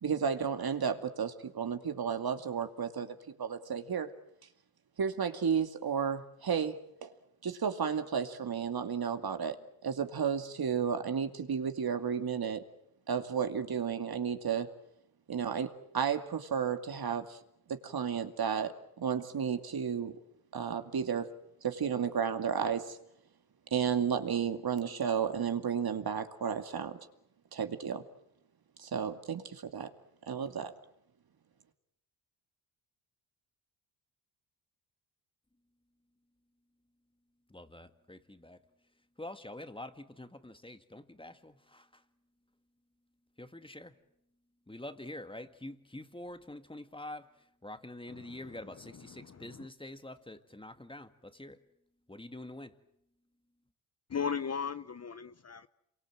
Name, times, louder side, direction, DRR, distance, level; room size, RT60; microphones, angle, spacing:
voice 1, 0.0-4.1 5.0-7.1 7.4-12.6 13.1-14.7 15.3-17.4 17.7-20.1 20.5-21.3 21.6-23.0 23.7-27.0 27.5-28.0 28.8-29.9 30.3-30.7, right 7 dB, 50° right, 2.4 m, -33 dB
voice 2, 37.5-38.6 39.2-42.0 43.4-44.0 44.7-51.6 52.1-52.8, left 1 dB, 10° left, 1.9 m, -46 dB
voice 3, 48.1-48.4 48.9-49.7 54.1-55.7, left 6 dB, 30° left, 0.9 m, -37 dB
28.0 x 23.5 x 7.7 m
cardioid pair, 75°, 48 cm